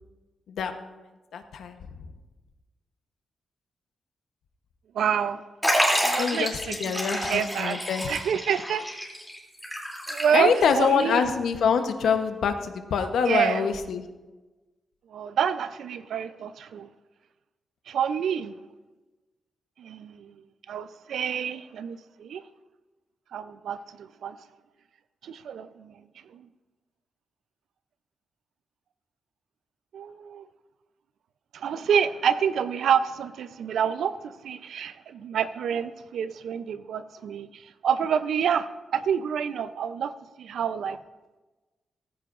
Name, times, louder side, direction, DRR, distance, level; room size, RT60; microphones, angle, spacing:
voice 1, 0.5-1.0 1.3-1.8 6.2-8.1 10.3-14.0, left 6 dB, 85° left, 7 dB, 0.9 m, -25 dB
voice 2, 4.9-5.4 6.0-7.8 8.1-8.9 10.1-11.3 13.3-13.7 15.1-16.9 17.9-18.5 19.8-20.3 20.7-22.4 23.3-24.4 25.2-25.9 26.3-26.5 29.9-30.4 31.5-41.0, right 8 dB, 85° right, 13 dB, 0.5 m, -28 dB
Liquid, 5.6-10.7 11.0-11.1 12.0-12.1, equal, ahead, 2.9 m, -28 dB
15.5 x 14.5 x 2.5 m, 1.2 s
cardioid pair, 95°, 0 cm